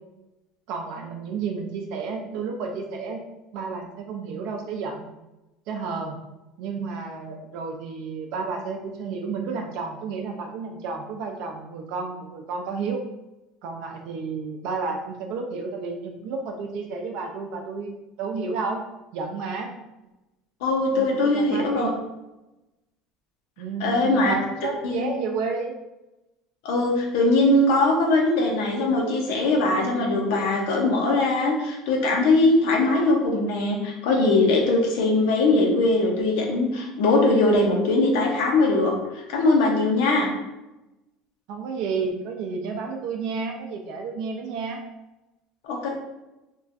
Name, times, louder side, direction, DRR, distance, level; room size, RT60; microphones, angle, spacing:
voice 1, 0.7-3.2 3.5-5.1 5.7-6.2 6.6-13.0 13.6-18.8 19.1-19.7 21.0-21.9 23.6-25.7 41.5-44.8, right 4 dB, 65° right, 2 dB, 0.4 m, -31 dB
voice 2, 20.6-21.9 23.8-24.3 24.8-25.1 26.6-40.3 45.6-45.9, left 2 dB, 80° left, 0 dB, 0.6 m, -21 dB
3.0 x 2.3 x 2.5 m, 0.99 s
cardioid pair, 140°, 0 cm